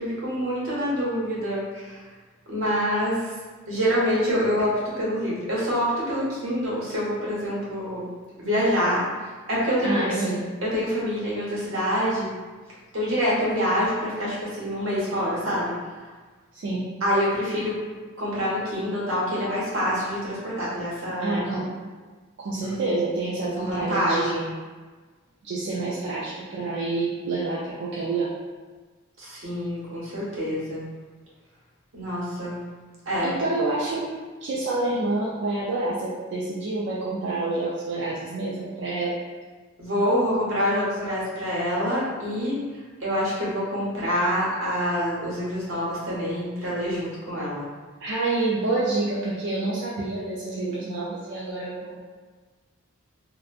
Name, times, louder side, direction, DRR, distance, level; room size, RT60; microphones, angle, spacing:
voice 1, 0.0-2.0 2.5-3.3 3.7-8.0 8.4-9.1 9.5-10.0 10.6-12.3 12.9-15.7 17.0-17.8 18.2-21.5 23.6-24.5 29.2-30.8 31.9-32.6 33.1-33.3 39.8-42.6 43.0-47.7, equal, 80° right, -7 dB, 1.0 m, -26 dB
voice 2, 9.8-10.5 16.5-16.9 21.2-21.7 22.4-24.4 25.4-28.3 33.2-34.1 34.4-39.2 48.0-52.0, right 2 dB, 60° right, -7 dB, 0.4 m, -28 dB
2.8 x 2.1 x 2.4 m, 1.4 s
head